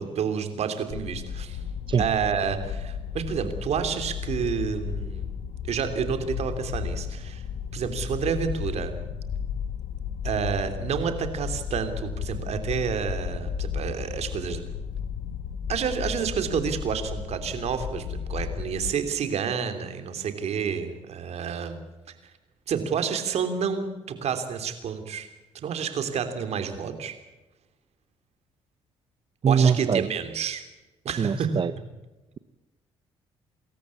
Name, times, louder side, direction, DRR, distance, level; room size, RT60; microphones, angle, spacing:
voice 1, 0.0-1.6 2.0-5.4 5.7-7.4 7.7-8.9 10.2-14.6 15.7-21.8 22.7-25.3 25.6-27.2 29.5-30.6 31.0-31.6, right 7 dB, 65° right, 8 dB, 3.2 m, -29 dB
sound 1, 0.9-18.9, left 7 dB, 75° left, 1.4 m, -34 dB
voice 2, 29.4-30.1 31.2-31.7, right 7 dB, 45° right, 12 dB, 1.0 m, -22 dB
25.5 x 14.0 x 8.5 m, 1.1 s
supercardioid pair, 60°, 12 cm